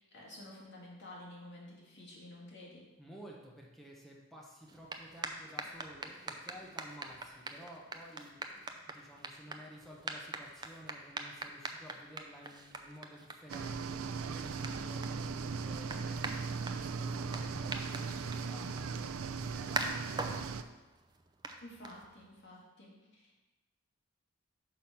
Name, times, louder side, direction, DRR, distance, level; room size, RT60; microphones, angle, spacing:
voice 1, 0.0-2.8 14.7-14.9 21.6-23.4, left 1 dB, 60° left, -4 dB, 2.1 m, -51 dB
voice 2, 3.0-20.4, equal, ahead, -3 dB, 0.9 m, -53 dB
sound 1, 4.6-22.4, right 3 dB, 20° right, 0.5 m, -44 dB
sound 2, 13.5-20.6, right 5 dB, 85° right, 0.4 m, -38 dB
6.1 x 5.1 x 5.8 m, 1.1 s
head